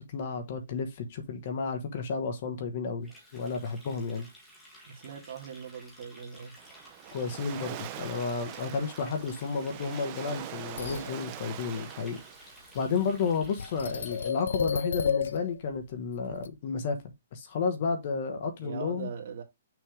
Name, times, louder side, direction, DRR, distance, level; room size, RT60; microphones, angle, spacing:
voice 1, 0.0-4.3 7.1-17.0 17.3-19.1, left 5 dB, 40° left, 1.2 m, -32 dB
Water tap faucet, 3.0-14.6, equal, 5° left, 1.6 m, -54 dB
voice 2, 4.8-6.5 18.6-19.4, right 7 dB, 45° right, 2.1 m, -40 dB
Waves surf, 6.6-13.4, right 12 dB, 25° right, 0.6 m, -43 dB
sound 1, 10.7-11.2 13.4-15.8 16.2-16.5, left 6 dB, 80° left, 0.5 m, -31 dB
6.2 x 3.4 x 4.9 m
hypercardioid pair, 170°, 0 cm